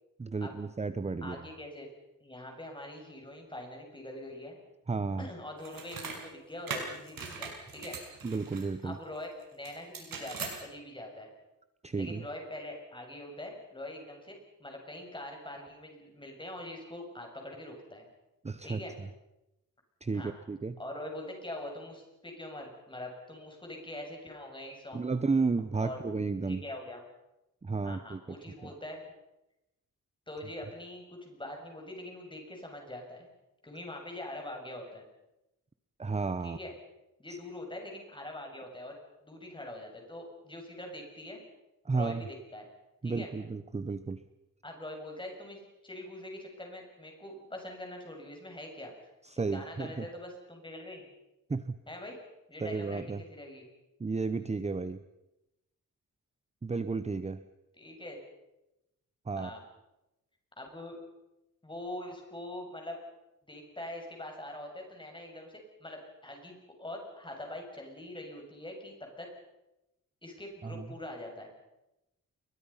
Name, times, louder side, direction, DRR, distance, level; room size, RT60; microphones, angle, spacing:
voice 1, 0.2-1.4 4.9-5.3 8.2-9.0 11.8-12.2 18.4-19.1 20.0-20.7 24.9-26.6 27.6-28.4 28.6-28.7 36.0-36.6 37.3-37.4 41.8-42.3 43.0-44.2 49.2-50.1 51.5-51.8 52.6-53.2 54.0-55.0 56.6-57.4 59.3-59.5 70.6-70.9, right 4 dB, 20° right, 12 dB, 0.8 m, -33 dB
voice 2, 1.2-1.9 2.2-4.6 5.2-8.0 8.8-11.3 11.9-18.1 18.6-18.9 20.1-20.4 20.8-25.0 25.8-26.0 26.4-27.0 27.8-29.0 30.3-33.3 33.6-35.1 36.4-36.7 37.2-39.0 39.2-41.4 41.9-42.7 43.0-43.3 44.6-48.9 49.5-51.0 51.9-52.2 52.5-53.6 57.8-58.2 59.4-59.6 60.6-61.0 61.6-63.0 63.5-69.3 70.2-71.5, left 1 dB, 15° left, 2 dB, 7.0 m, -43 dB
sound 1, 5.6-6.2 6.7-8.7 9.6-10.6, right 5 dB, 75° right, 6.5 m, -40 dB
30.0 x 23.0 x 5.7 m, 0.94 s
wide cardioid pair, 130°, 34 cm